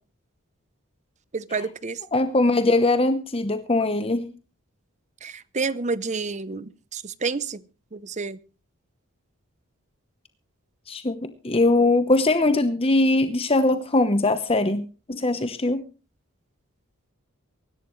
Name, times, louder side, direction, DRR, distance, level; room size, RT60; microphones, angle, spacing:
voice 1, 1.3-2.0 5.2-7.6 7.9-8.4, right 4 dB, 35° right, 0.7 m, -29 dB
voice 2, 2.1-4.3 10.9-14.8 15.1-15.8, left 2 dB, 25° left, 0.9 m, -21 dB
24.0 x 12.0 x 3.2 m
head